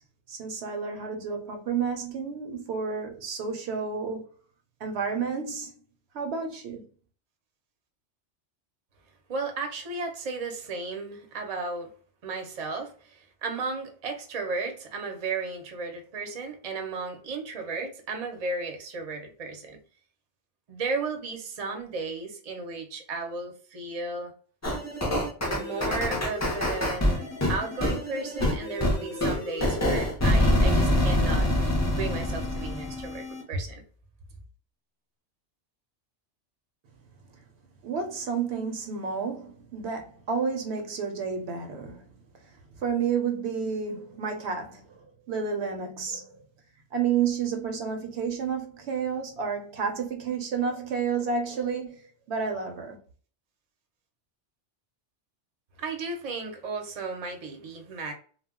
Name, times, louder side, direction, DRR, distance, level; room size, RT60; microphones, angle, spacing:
voice 1, 0.3-4.3 4.8-5.8 6.1-6.9 37.8-42.1 42.8-46.4 46.9-53.0, right 6 dB, 70° right, 0.8 m, -30 dB
voice 2, 9.3-11.9 12.2-19.8 20.7-24.3 25.5-31.5 31.9-33.8 55.8-58.1, right 3 dB, 40° right, 0.6 m, -34 dB
sound 1, 24.6-33.4, left 1 dB, 25° left, 0.4 m, -26 dB
2.2 x 2.0 x 3.5 m
omnidirectional pair, 1.2 m